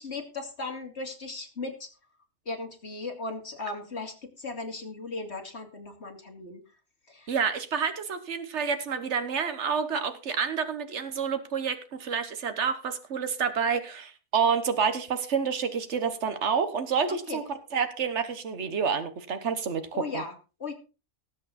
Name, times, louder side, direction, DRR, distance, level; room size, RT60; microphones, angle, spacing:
voice 1, 0.0-1.9 2.4-6.6 7.1-7.3 17.3-17.4 19.9-20.7, left 3 dB, 75° left, 3 dB, 3.1 m, -37 dB
voice 2, 7.3-20.2, right 6 dB, 85° right, 9 dB, 1.5 m, -29 dB
19.0 x 8.1 x 4.2 m, 0.33 s
omnidirectional pair, 1.1 m